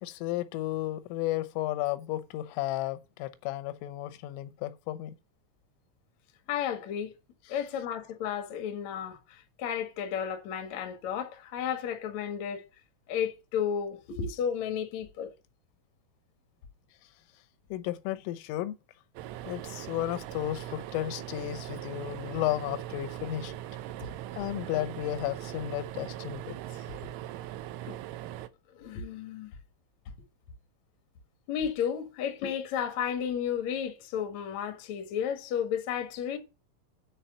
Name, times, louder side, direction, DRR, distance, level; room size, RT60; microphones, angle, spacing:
voice 1, 0.0-5.1 17.7-18.8 19.5-23.6 24.4-26.6, left 14 dB, 85° left, 3.4 m, -33 dB
voice 2, 6.5-7.1 7.5-12.6 13.1-15.3 27.9-28.0 28.7-29.5 31.5-36.4, left 8 dB, 65° left, 1.7 m, -33 dB
sound 1, 19.2-28.5, right 13 dB, 85° right, 3.3 m, -40 dB
10.5 x 4.7 x 6.7 m
omnidirectional pair, 5.6 m